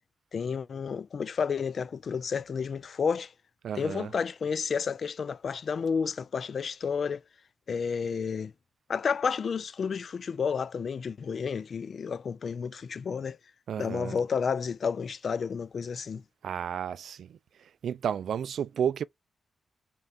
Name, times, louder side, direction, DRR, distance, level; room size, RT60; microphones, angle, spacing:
voice 1, 0.3-3.3 3.8-7.2 7.7-8.5 8.9-13.4 13.8-16.2, left 6 dB, 60° left, 0.3 m, -31 dB
voice 2, 3.6-4.1 13.7-14.2 16.4-17.4 17.8-19.0, right 8 dB, 80° right, 0.3 m, -32 dB
4.4 x 2.5 x 3.3 m
cardioid pair, 95°, 0 cm